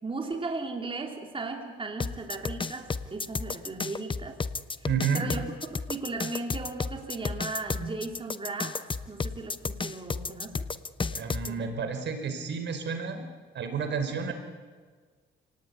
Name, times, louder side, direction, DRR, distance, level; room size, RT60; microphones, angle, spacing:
voice 1, 0.0-4.4 5.1-10.6 11.5-11.7, right 3 dB, 25° right, 3 dB, 3.1 m, -36 dB
sound 1, 2.0-11.5, left 4 dB, 25° left, 1.0 m, -32 dB
voice 2, 4.8-5.3 11.1-13.2 13.5-14.3, right 6 dB, 65° right, 7 dB, 4.7 m, -30 dB
29.0 x 18.5 x 9.8 m, 1.5 s
cardioid pair, 90°, 20 cm